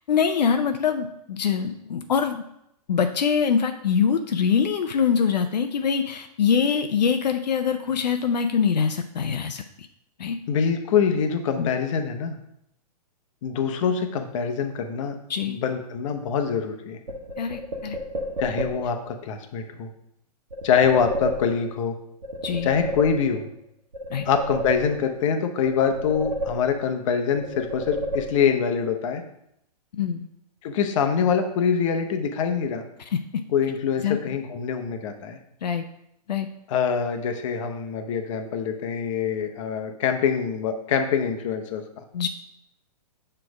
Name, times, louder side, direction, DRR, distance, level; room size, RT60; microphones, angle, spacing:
voice 1, 0.1-2.4 2.9-9.9 10.2-10.4 11.6-11.7 15.3-15.6 17.4-18.0 22.4-22.7 24.1-24.3 29.9-30.3 33.1-33.2 34.0-34.2 35.6-35.8 36.3-36.5 42.1-42.3, left 7 dB, 90° left, 6 dB, 0.5 m, -24 dB
voice 2, 10.5-12.4 13.4-15.2 15.5-17.0 18.4-19.9 20.6-22.0 22.6-23.5 24.2-29.2 30.6-32.9 33.5-35.4 36.7-41.8, left 6 dB, 50° left, 6 dB, 0.8 m, -24 dB
sound 1, 17.1-19.0 20.5-21.9 22.2-23.6 23.9-25.3 25.6-27.0 27.4-28.7, equal, 85° right, 1.2 m, -32 dB
6.1 x 3.3 x 4.8 m, 0.78 s
hypercardioid pair, 135°, 21 cm